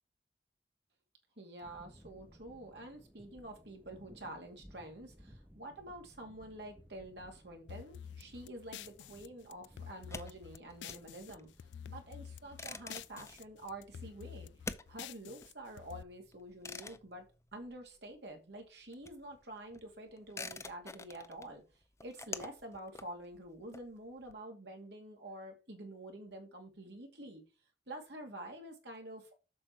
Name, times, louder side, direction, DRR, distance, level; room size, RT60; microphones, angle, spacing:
voice 1, 1.4-11.5 11.9-14.5 14.9-17.2 17.5-21.6 22.0-27.4 27.9-29.3, right 1 dB, 65° right, 2.5 m, -48 dB
sound 1, 1.6-14.8, equal, 10° right, 1.0 m, -61 dB
sound 2, 7.7-11.3 11.6-13.4 13.7-16.0, left 9 dB, 80° left, 0.3 m, -49 dB
sound 3, 10.0-18.3 18.5-24.3, left 3 dB, 15° left, 0.5 m, -48 dB
7.9 x 6.3 x 4.6 m
head